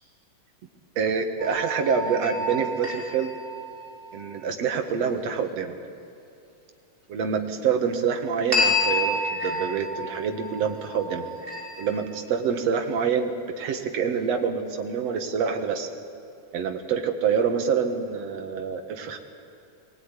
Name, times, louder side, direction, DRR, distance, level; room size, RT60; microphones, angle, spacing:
voice 1, 1.0-3.3 4.1-5.8 7.1-11.3 11.8-13.3 13.6-15.9 16.5-19.2, right 6 dB, 60° right, 5 dB, 2.8 m, -26 dB
sound 1, 1.4-4.3 8.5-12.1, left 2 dB, 15° right, 4.4 m, -29 dB
23.5 x 20.0 x 10.0 m, 2.7 s
omnidirectional pair, 3.4 m